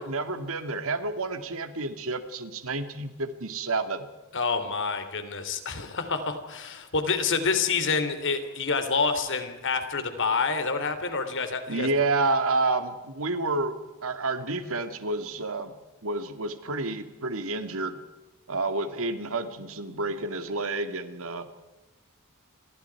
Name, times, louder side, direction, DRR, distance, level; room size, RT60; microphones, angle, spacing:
voice 1, 0.0-4.1 11.7-15.8 16.0-18.0 18.5-21.5, right 3 dB, 65° right, 8 dB, 2.3 m, -29 dB
voice 2, 4.3-11.9, left 4 dB, 60° left, 8 dB, 3.3 m, -27 dB
29.5 x 25.5 x 4.8 m, 1.1 s
head